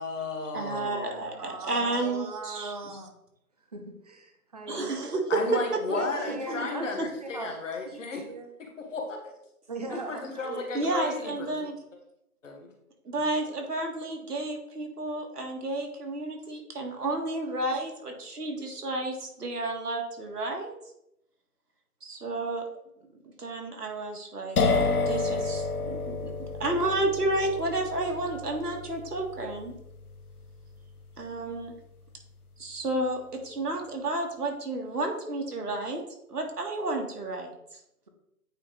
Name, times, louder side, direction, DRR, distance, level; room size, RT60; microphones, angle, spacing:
voice 1, 0.0-1.4 5.3-8.2 8.6-9.2 9.9-11.5 12.4-12.7, left 3 dB, 55° left, 2 dB, 1.5 m, -34 dB
voice 2, 0.5-3.0 4.7-6.7 7.0-7.1 10.4-11.8 13.1-20.8 22.0-22.6 23.4-26.3 26.6-29.7 31.2-31.7 32.6-36.0 36.3-37.5, right 2 dB, 80° right, 2 dB, 1.9 m, -31 dB
voice 3, 1.4-3.1 3.7-5.0 5.9-7.5 7.8-8.5 9.7-10.7, right 3 dB, 25° right, 4 dB, 0.7 m, -39 dB
sound 1, 24.6-32.1, left 4 dB, 70° left, 1.2 m, -31 dB
8.7 x 3.2 x 4.0 m, 0.80 s
figure-of-eight pair, 160°, 46 cm